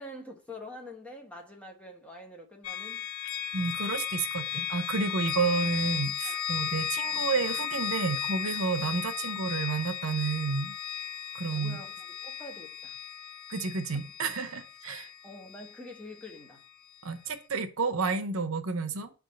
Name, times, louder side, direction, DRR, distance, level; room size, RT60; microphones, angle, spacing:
voice 1, 0.0-3.1 6.2-6.4 8.8-8.9 11.5-13.0 14.9-15.0 15.2-16.6, left 1 dB, 5° left, 1.0 m, -46 dB
sound 1, 2.6-16.5, left 9 dB, 70° left, 0.6 m, -35 dB
voice 2, 3.5-10.7 11.3-11.8 13.5-15.1 17.0-19.1, right 4 dB, 75° right, 0.8 m, -30 dB
5.5 x 3.6 x 5.1 m
head